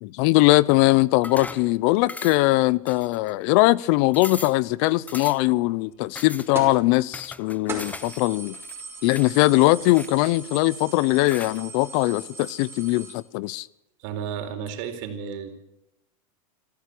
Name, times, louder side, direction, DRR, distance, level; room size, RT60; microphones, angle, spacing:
voice 1, 0.0-8.6 9.0-13.7, left 20 dB, 55° left, 0.8 m, -21 dB
sound 1, 1.2-1.7 2.1-2.5 2.9-3.5 3.8-3.9 4.1-4.6 5.1-5.5 6.1-6.5 7.1-8.2 8.5-9.3 9.9-10.6 11.2-11.6, left 3 dB, 10° left, 0.8 m, -39 dB
sound 2, 6.6-6.8 7.3-7.4 7.7-13.1, right 3 dB, 15° right, 5.5 m, -39 dB
voice 2, 14.0-15.5, right 7 dB, 60° right, 4.3 m, -32 dB
22.5 x 15.5 x 8.5 m
supercardioid pair, 130°, 18 cm